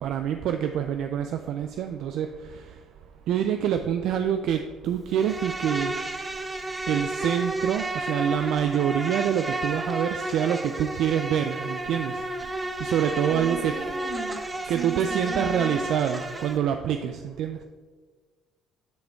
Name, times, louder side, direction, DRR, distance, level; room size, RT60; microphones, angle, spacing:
voice 1, 0.0-2.3 3.3-5.9 6.9-12.1 12.8-13.7 14.7-17.6, right 9 dB, 70° right, 7 dB, 0.3 m, -26 dB
Insect, 5.1-16.6, right 1 dB, 20° right, 0.8 m, -32 dB
voice 2, 13.3-14.4 14.7-15.8, right 4 dB, 45° right, 2 dB, 1.6 m, -37 dB
9.2 x 5.0 x 3.5 m, 1.4 s
supercardioid pair, 65°, 0 cm